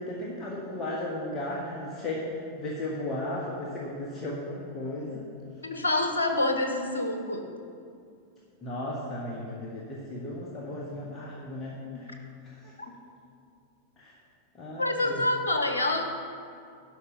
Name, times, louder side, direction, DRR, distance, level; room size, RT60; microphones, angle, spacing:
voice 1, 0.0-5.2 8.6-13.0 14.0-14.1 14.5-15.2, left 1 dB, 25° left, -4 dB, 1.5 m, -35 dB
voice 2, 5.6-7.5 12.8-12.9 14.8-16.0, left 2 dB, 75° left, 5 dB, 1.1 m, -27 dB
11.5 x 5.8 x 6.6 m, 2.4 s
figure-of-eight pair, 90°, 0 cm